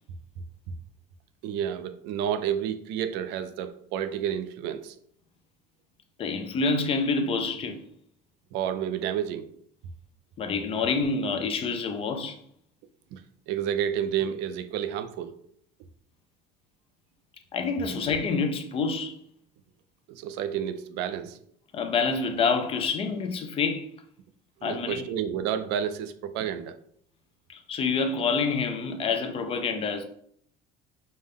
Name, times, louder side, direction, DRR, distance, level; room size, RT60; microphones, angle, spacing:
voice 1, 1.4-4.9 8.5-9.5 13.1-13.2 13.5-15.3 20.1-21.4 24.6-26.7, right 9 dB, 80° right, 0.4 m, -30 dB
voice 2, 6.2-7.8 10.4-12.4 17.5-19.2 21.7-23.9 24.6-25.0 27.5-30.0, left 4 dB, 35° left, 0.4 m, -27 dB
5.3 x 2.1 x 3.5 m
cardioid pair, 160°, 17 cm